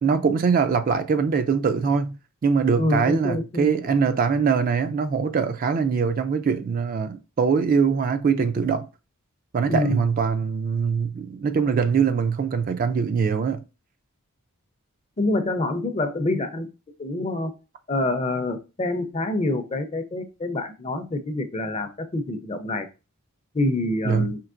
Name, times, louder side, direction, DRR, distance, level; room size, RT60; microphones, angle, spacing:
voice 1, 0.0-8.9 9.5-13.6 24.0-24.3, right 6 dB, 40° right, 0.3 m, -22 dB
voice 2, 2.8-3.7 9.7-10.0 15.2-16.7 17.0-17.5 17.9-22.9 23.5-24.4, left 2 dB, 30° left, 0.5 m, -26 dB
4.5 x 2.9 x 2.5 m
head